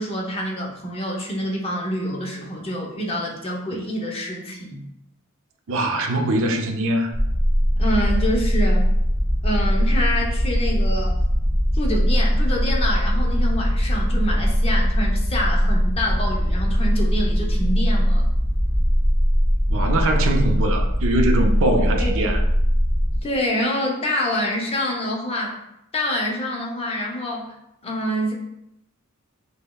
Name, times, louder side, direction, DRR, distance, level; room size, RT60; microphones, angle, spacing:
voice 1, 0.0-4.8 7.8-8.9 9.4-11.2 11.7-18.3 22.0-22.4 23.2-25.6 25.9-27.6 27.8-28.3, equal, 25° left, -2 dB, 0.6 m, -26 dB
voice 2, 5.7-7.1 19.7-22.4, right 1 dB, 65° right, 4 dB, 0.4 m, -22 dB
sound 1, 7.1-23.2, equal, 5° left, 1.1 m, -20 dB
5.1 x 2.1 x 2.2 m, 0.83 s
head